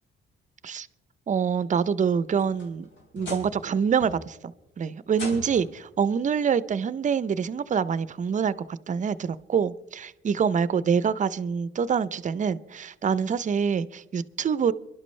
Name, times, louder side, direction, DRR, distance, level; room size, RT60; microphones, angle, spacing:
voice 1, 1.3-2.9 3.1-14.7, right 6 dB, 40° right, 0.6 m, -26 dB
sound 1, 2.1-3.7 4.0-4.5 5.1-5.8 7.0-7.1 7.7-7.8 9.4-9.5, left 2 dB, 70° left, 3.8 m, -41 dB
27.5 x 11.5 x 3.2 m
cardioid pair, 90°, 20 cm